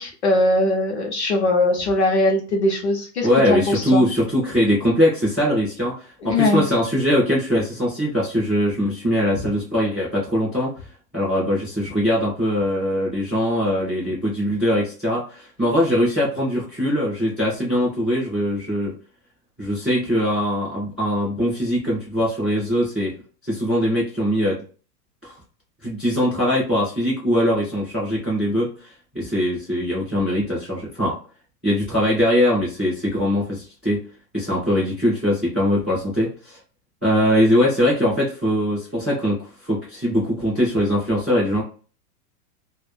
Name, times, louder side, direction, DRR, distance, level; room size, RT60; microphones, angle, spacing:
voice 1, 0.0-4.0 6.2-6.6, left 2 dB, 45° left, 2 dB, 0.5 m, -20 dB
voice 2, 3.2-10.7 11.1-18.9 19.6-23.1 23.4-24.6 25.2-25.4 25.8-28.9 29.1-31.1 31.6-34.0 34.3-36.6 37.0-41.6, equal, 10° right, -14 dB, 0.4 m, -21 dB
2.1 x 2.1 x 3.1 m, 0.38 s
supercardioid pair, 180°, 48 cm